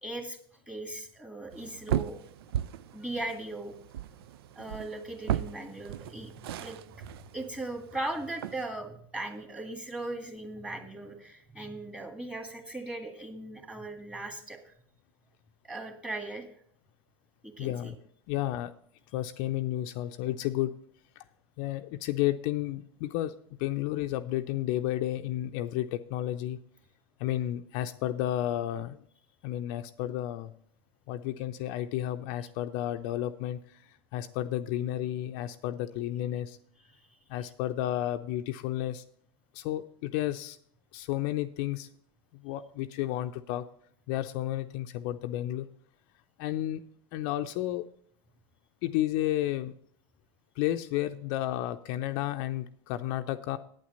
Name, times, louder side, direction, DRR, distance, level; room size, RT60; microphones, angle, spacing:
voice 1, 0.0-0.4 0.7-2.2 2.9-3.7 4.6-6.8 7.3-14.6 15.6-16.5 17.4-17.9, right 2 dB, 10° right, 5 dB, 1.9 m, -38 dB
sound 1, 1.5-8.6, right 11 dB, 70° right, 0.4 m, -36 dB
voice 2, 17.6-18.0 18.3-18.7 19.1-20.7 21.2-21.3 21.6-23.3 23.6-26.6 27.2-29.0 29.4-30.5 31.1-36.6 37.3-39.0 39.5-40.6 40.9-41.9 42.3-43.6 44.1-45.7 46.4-46.8 47.1-47.8 48.8-49.7 50.6-53.6, left 13 dB, 55° left, 7 dB, 0.6 m, -32 dB
8.7 x 8.6 x 5.5 m, 0.62 s
hypercardioid pair, 85°, 13 cm